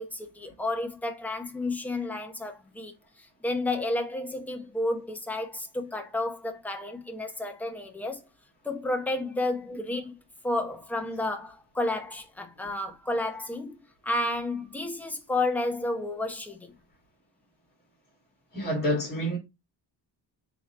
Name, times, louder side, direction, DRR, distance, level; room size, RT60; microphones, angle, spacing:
voice 1, 0.0-2.9 3.2-8.2 8.6-10.2 10.4-13.8 14.0-16.7, left 2 dB, 5° left, 0.8 m, -31 dB
voice 2, 18.5-19.4, equal, 20° left, 1.7 m, -28 dB
3.7 x 2.9 x 4.2 m
cardioid pair, 115°, 45 cm